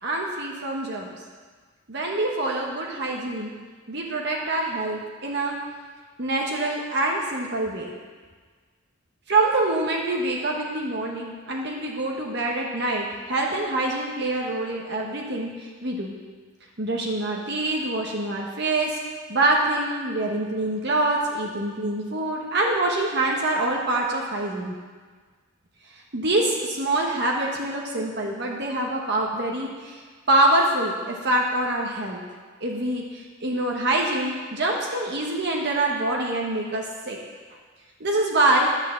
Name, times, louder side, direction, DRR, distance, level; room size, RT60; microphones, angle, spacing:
voice 1, 0.0-1.1 1.9-3.5 3.9-5.6 6.2-7.9 9.3-16.1 16.8-19.0 19.3-24.7 25.9-32.2 32.6-37.2 38.0-38.7, right 2 dB, 55° right, -1 dB, 1.3 m, -25 dB
11.0 x 6.4 x 7.5 m, 1.5 s
head